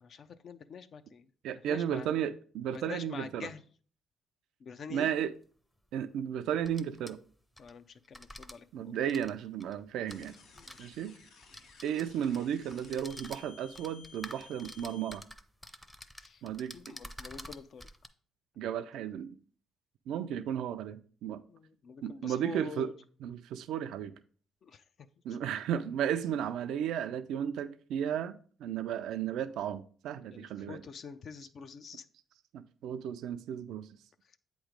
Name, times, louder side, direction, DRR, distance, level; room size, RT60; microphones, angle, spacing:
voice 1, 0.0-1.3 1.7-2.1 2.7-3.6 4.6-5.1 7.6-9.0 10.6-10.9 16.2-16.4 16.7-17.9 21.5-22.9 24.6-24.8 30.3-32.0, left 6 dB, 60° left, 0.4 m, -46 dB
voice 2, 1.4-3.5 4.9-5.3 5.9-7.2 8.7-10.3 10.8-11.1 11.8-15.2 16.4-16.8 18.6-19.4 20.1-21.4 22.0-22.9 23.2-24.1 25.2-30.8 32.5-33.9, right 9 dB, 85° right, 0.4 m, -34 dB
sound 1, 5.1-5.2 6.5-7.7 8.1-8.5 9.0-10.8 11.4-12.4 12.7-18.1, equal, 5° left, 0.6 m, -49 dB
sound 2, 10.1-15.2, left 5 dB, 85° left, 1.2 m, -56 dB
7.9 x 3.1 x 5.0 m
cardioid pair, 90°, 0 cm